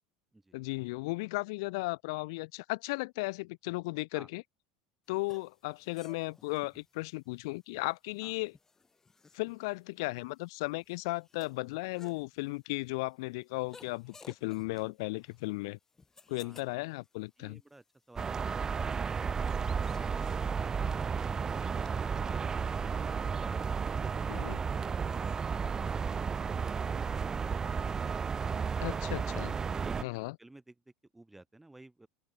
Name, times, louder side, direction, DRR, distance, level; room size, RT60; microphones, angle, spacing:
voice 1, 0.5-4.4 5.1-8.6 9.3-15.8 16.3-17.6 24.3-24.6 28.8-29.5 30.0-30.4, left 24 dB, 75° left, 1.7 m, -35 dB
sound 1, 5.1-21.9, left 4 dB, 20° left, 4.5 m, -60 dB
voice 2, 17.4-21.3 29.3-29.5 29.7-32.1, right 2 dB, 10° right, 3.6 m, -55 dB
sound 2, 18.2-30.0, right 6 dB, 25° right, 0.7 m, -33 dB
open air
supercardioid pair, 100°, 2 cm